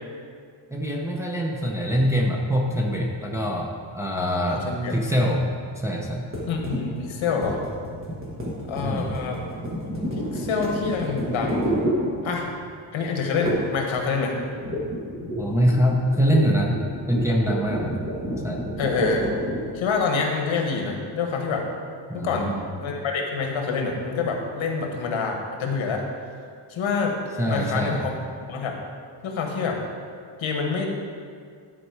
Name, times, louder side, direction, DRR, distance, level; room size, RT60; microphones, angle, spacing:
voice 1, 0.7-5.4 5.8-6.2 8.8-9.2 15.3-16.7 17.1-18.0 18.4-18.6 22.1-22.6 27.4-28.0, equal, 5° right, -2 dB, 0.5 m, -24 dB
voice 2, 4.5-4.9 6.5-7.6 8.7-9.4 10.1-11.8 12.2-12.5 12.9-14.3 18.8-19.3 19.7-21.7 22.1-26.0 26.7-27.2 27.5-28.1 28.4-28.8 29.2-29.8 30.4-30.8, left 5 dB, 80° left, 1 dB, 1.3 m, -26 dB
sound 1, 6.3-12.7 13.5-13.8 14.1-19.8, equal, 25° right, 1.3 m, -30 dB
11.0 x 4.2 x 4.6 m, 2.2 s
wide cardioid pair, 175°, 47 cm